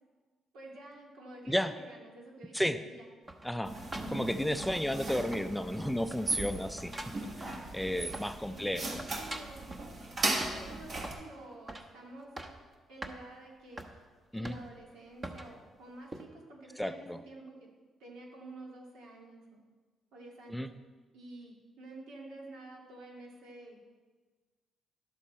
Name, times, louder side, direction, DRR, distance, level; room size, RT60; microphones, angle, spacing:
voice 1, 0.5-3.1 8.5-9.8 10.5-12.4 12.9-14.0 14.3-17.7 18.0-19.6 20.1-20.7 21.1-23.8, right 2 dB, 85° right, -1 dB, 2.1 m, -49 dB
sound 1, 3.3-5.1 5.3-5.8 6.1-8.5 8.8-9.9 10.4-11.3 11.7-11.9 12.2-12.7 13.0-13.2 13.8-13.9 14.4-14.9 15.2-15.5 16.1-16.3, right 1 dB, 30° right, 1.0 m, -44 dB
voice 2, 3.4-3.8 4.1-6.9 7.4-9.0 14.3-14.6 16.8-17.2 20.5-20.7, equal, 5° left, 9 dB, 0.4 m, -33 dB
sound 2, 3.6-11.1, right 2 dB, 50° right, 1.6 m, -37 dB
11.5 x 7.2 x 4.3 m, 1.4 s
cardioid pair, 90°, 0 cm